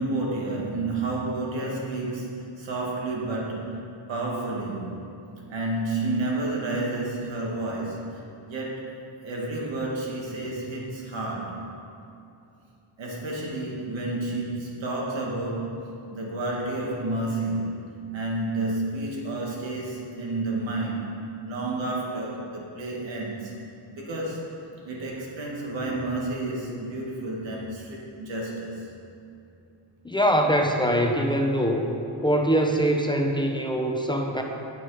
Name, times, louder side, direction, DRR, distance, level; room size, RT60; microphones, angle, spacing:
voice 1, 0.0-4.9 5.5-8.9 9.2-11.7 13.0-15.8 16.1-21.2 21.4-23.5 23.9-24.5 24.8-28.9, right 2 dB, 90° right, -2 dB, 2.1 m, -30 dB
voice 2, 30.0-31.9 32.2-34.4, equal, 10° left, 2 dB, 0.6 m, -23 dB
9.3 x 9.1 x 4.9 m, 2.7 s
wide cardioid pair, 155°, 44 cm